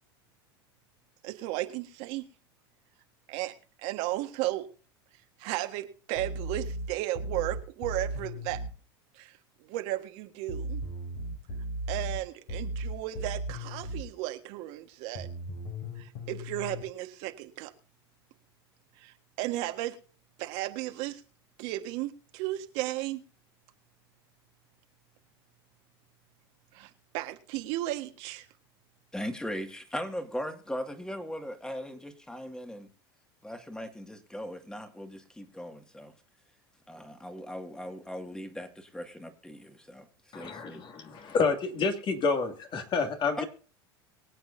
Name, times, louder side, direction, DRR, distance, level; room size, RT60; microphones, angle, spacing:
voice 1, 1.2-2.3 3.3-3.5 3.8-4.7 5.4-8.6 9.1-9.3 9.6-10.8 11.9-15.3 16.0-17.7 19.0-20.0 20.4-21.2 21.6-23.2 26.7-28.5, right 16 dB, 60° right, 1.6 m, -34 dB
sound 1, 6.2-8.7 10.5-14.1 15.2-16.8, right 1 dB, 70° left, 5.1 m, -36 dB
voice 2, 29.1-32.9 33.4-36.1 36.9-40.1 40.3-40.8 43.4-43.5, equal, 5° left, 2.1 m, -39 dB
voice 3, 40.3-43.4, left 4 dB, 40° left, 2.4 m, -29 dB
23.5 x 8.0 x 2.7 m
hypercardioid pair, 90°, 13 cm